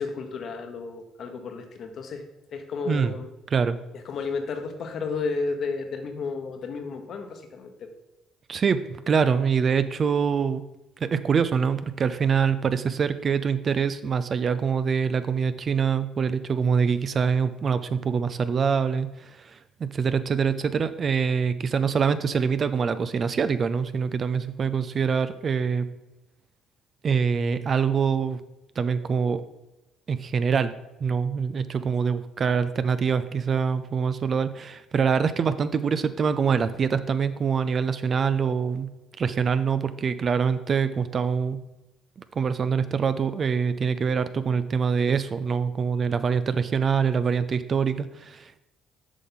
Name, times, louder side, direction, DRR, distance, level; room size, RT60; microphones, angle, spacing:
voice 1, 0.0-3.3 3.9-7.9, left 4 dB, 55° left, 5 dB, 1.1 m, -32 dB
voice 2, 8.5-10.6 11.1-25.9 27.0-28.4 28.8-29.4 30.1-30.7 31.0-38.9 39.2-41.6 42.4-48.6, right 6 dB, 45° right, 12 dB, 0.5 m, -24 dB
8.2 x 5.4 x 3.9 m, 0.96 s
hypercardioid pair, 55°, 0 cm